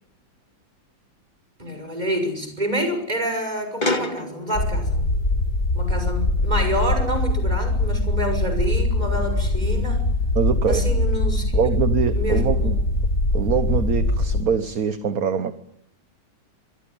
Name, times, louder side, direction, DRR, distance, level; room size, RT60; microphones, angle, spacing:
voice 1, 1.6-5.0 5.7-10.0 10.7-11.4 12.1-12.7, right 1 dB, 20° right, 6 dB, 6.5 m, -27 dB
sound 1, 3.8-6.6 6.9-8.4 9.1-10.5 11.1-11.2 12.0-13.3, left 2 dB, 25° left, 1.9 m, -35 dB
sound 2, 4.5-14.4, left 2 dB, 40° left, 4.3 m, -22 dB
voice 2, 10.3-10.8 11.5-12.8 13.3-15.5, right 7 dB, 50° right, 11 dB, 1.6 m, -23 dB
25.5 x 22.0 x 8.9 m, 0.79 s
omnidirectional pair, 2.1 m